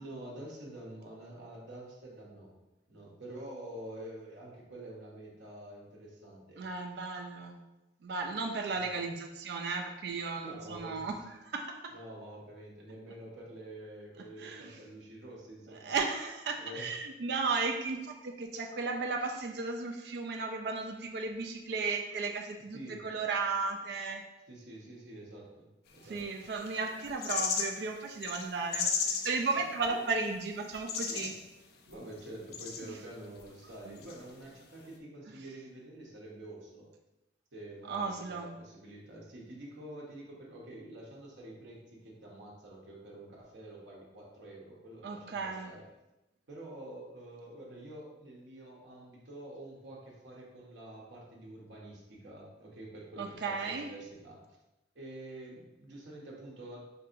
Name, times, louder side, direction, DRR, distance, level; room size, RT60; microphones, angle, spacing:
voice 1, 0.0-2.5 2.9-6.6 8.7-8.9 10.4-11.1 11.9-15.9 16.6-16.9 22.7-23.0 24.5-26.2 29.8-30.0 31.1-31.3 31.9-36.9 37.5-45.8 46.5-54.4 54.9-56.8, right 1 dB, 80° right, -3 dB, 1.0 m, -47 dB
voice 2, 6.6-7.6 8.0-11.1 11.4-11.9 14.4-14.7 15.8-24.2 26.1-31.3 32.9-33.0 33.9-34.0 35.3-35.4 37.9-38.5 45.0-45.7 53.2-53.9, right 4 dB, 65° right, 3 dB, 0.4 m, -35 dB
sound 1, 26.2-27.8 28.1-29.9 30.2-30.3 30.6-31.4 31.9-32.9 33.4-33.5 34.0-34.2, left 5 dB, 60° left, 0.4 m, -35 dB
5.3 x 2.7 x 2.5 m, 0.99 s
head